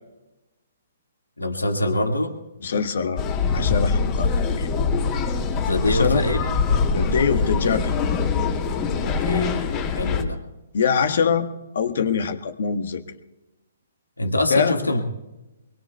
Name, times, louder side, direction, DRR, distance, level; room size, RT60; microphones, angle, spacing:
voice 1, 1.4-2.4 5.6-6.6 9.0-9.6 10.0-10.4 14.2-15.1, left 1 dB, 85° left, 5 dB, 1.9 m, -24 dB
voice 2, 2.6-3.2 3.5-5.1 5.9-6.2 6.9-8.0 10.7-11.5 11.7-13.0 14.3-14.7, left 6 dB, 60° left, 8 dB, 1.4 m, -24 dB
sound 1, 3.2-10.2, left 5 dB, 30° left, 2.3 m, -23 dB
23.5 x 22.5 x 2.3 m, 1.0 s
figure-of-eight pair, 125°, 0 cm